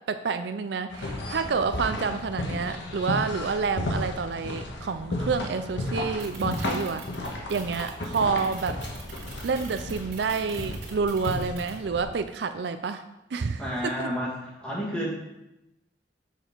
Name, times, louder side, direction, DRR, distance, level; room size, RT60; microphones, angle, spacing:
voice 1, 0.1-7.0 7.5-8.8 9.4-13.0 13.3-14.1, right 5 dB, 65° right, 9 dB, 0.4 m, -28 dB
sound 1, 0.9-12.0, left 1 dB, 70° left, 1.4 m, -34 dB
sound 2, 6.2-11.7, right 5 dB, 90° right, 2.3 m, -44 dB
voice 2, 13.6-15.3, equal, 5° left, -5 dB, 2.1 m, -31 dB
6.9 x 6.6 x 4.5 m, 0.91 s
head